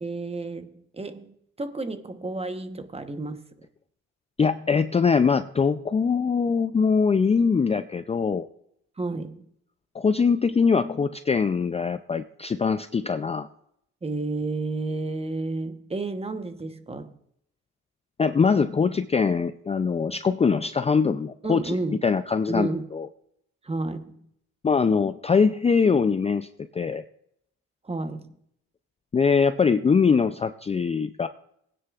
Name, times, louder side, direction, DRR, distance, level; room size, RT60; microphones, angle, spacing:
voice 1, 0.0-3.4 9.0-9.5 14.0-17.1 21.4-22.0 22.5-22.9 23.6-24.3 27.8-28.4, right 3 dB, 20° right, 9 dB, 1.0 m, -31 dB
voice 2, 4.4-8.5 9.9-13.5 18.2-21.8 22.0-23.1 24.6-26.5 26.7-27.0 29.1-31.3, left 5 dB, 20° left, 10 dB, 0.4 m, -22 dB
19.5 x 9.6 x 2.4 m, 0.73 s
cardioid pair, 90°, 30 cm